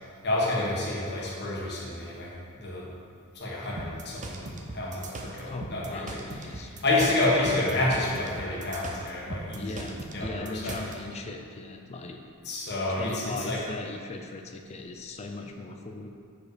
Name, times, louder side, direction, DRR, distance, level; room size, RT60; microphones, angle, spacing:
voice 1, 0.2-2.9 3.3-6.0 6.5-9.9 10.1-10.8 12.4-13.6, left 2 dB, 50° left, -5 dB, 1.5 m, -29 dB
sound 1, 3.8-11.0, right 2 dB, 35° right, 0.6 m, -39 dB
voice 2, 5.4-6.7 9.6-12.2 12.9-16.1, left 2 dB, 30° left, 4 dB, 0.4 m, -39 dB
6.3 x 4.8 x 5.0 m, 2.3 s
head